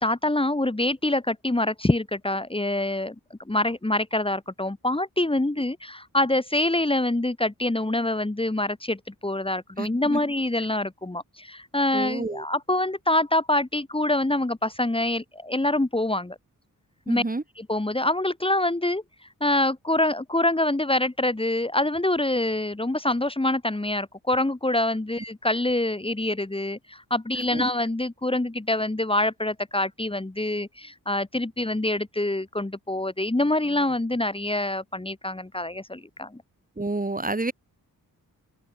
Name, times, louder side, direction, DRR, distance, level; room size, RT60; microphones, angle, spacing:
voice 1, 0.0-3.1 3.5-16.4 17.1-17.2 17.6-19.0 19.4-36.4, left 1 dB, 15° left, 3.1 m, -25 dB
voice 2, 9.8-10.2 11.9-12.4 17.1-17.4 27.5-27.7 36.8-37.5, right 2 dB, 25° right, 4.3 m, -29 dB
open air
wide cardioid pair, 95°, 35 cm